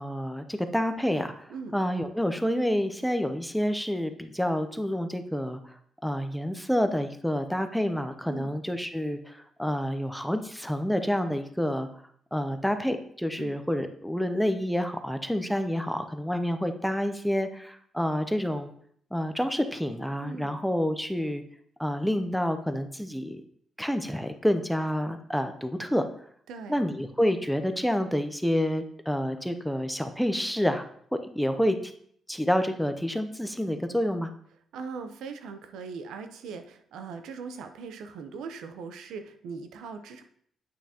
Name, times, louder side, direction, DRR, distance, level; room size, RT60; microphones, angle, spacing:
voice 1, 0.0-5.6 6.0-11.9 12.3-18.7 19.1-21.4 21.8-23.4 23.8-26.1 26.7-30.9 31.2-31.9 32.3-34.3, equal, ahead, 8 dB, 0.5 m, -28 dB
voice 2, 20.2-20.6 26.5-26.8 34.7-40.2, right 5 dB, 90° right, 8 dB, 0.6 m, -40 dB
8.7 x 5.8 x 2.8 m, 0.64 s
cardioid pair, 105°, 0 cm